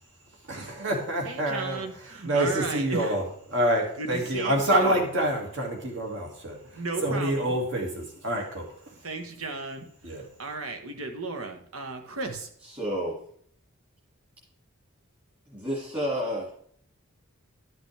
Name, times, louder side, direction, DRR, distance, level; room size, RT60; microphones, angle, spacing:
voice 1, 0.5-3.2 3.5-8.6 10.0-10.2, right 1 dB, 60° right, 2.1 m, -27 dB
voice 2, 1.2-3.2 4.0-5.0 6.7-7.5 9.0-9.8 10.4-12.5, right 3 dB, 80° right, 1.2 m, -34 dB
voice 3, 12.6-13.2 15.5-16.6, equal, 25° right, 2.1 m, -30 dB
12.0 x 6.0 x 3.3 m
head